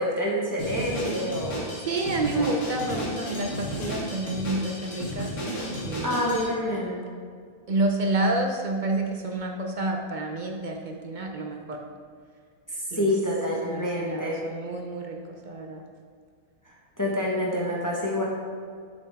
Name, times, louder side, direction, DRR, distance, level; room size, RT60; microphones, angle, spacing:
voice 1, 0.0-1.7 2.3-2.5 6.0-7.0 12.7-14.4 17.0-18.3, left 1 dB, 15° left, -4 dB, 1.0 m, -27 dB
Drum kit, 0.6-6.5, equal, 80° left, 2.2 m, -33 dB
voice 2, 1.8-5.3 5.8-6.3 7.7-11.8 12.9-13.1 13.7-15.9, right 2 dB, 45° right, 2 dB, 0.6 m, -29 dB
7.8 x 7.0 x 3.5 m, 2.1 s
omnidirectional pair, 1.6 m